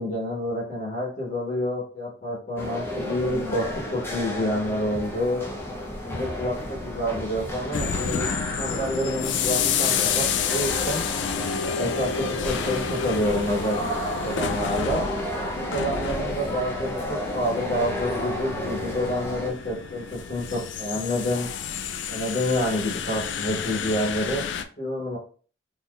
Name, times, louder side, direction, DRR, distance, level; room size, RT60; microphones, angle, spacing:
voice 1, 0.0-5.4 6.0-8.3 8.5-11.0 11.6-13.8 14.2-15.0 15.5-21.5 22.1-24.4 24.8-25.2, equal, 45° left, -3 dB, 1.1 m, -28 dB
sound 1, 2.6-19.5, left 1 dB, 10° left, 0.6 m, -32 dB
sound 2, 7.7-24.6, left 7 dB, 70° left, 0.4 m, -30 dB
3.9 x 2.8 x 2.4 m, 0.40 s
head